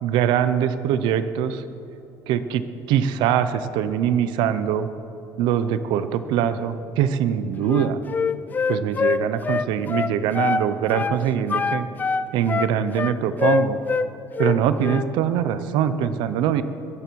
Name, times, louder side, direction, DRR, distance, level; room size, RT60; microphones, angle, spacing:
voice 1, 0.0-1.6 2.3-4.9 5.4-8.0 8.7-11.9 12.3-13.8 14.4-16.6, right 9 dB, 85° right, 12 dB, 0.9 m, -23 dB
Wind instrument woodwind instrument, 7.7-10.7 10.9-11.2 11.5-14.1 14.4-15.1, left 5 dB, 25° left, 0.5 m, -24 dB
22.0 x 14.0 x 4.7 m, 3.0 s
cardioid pair, 140°, 8 cm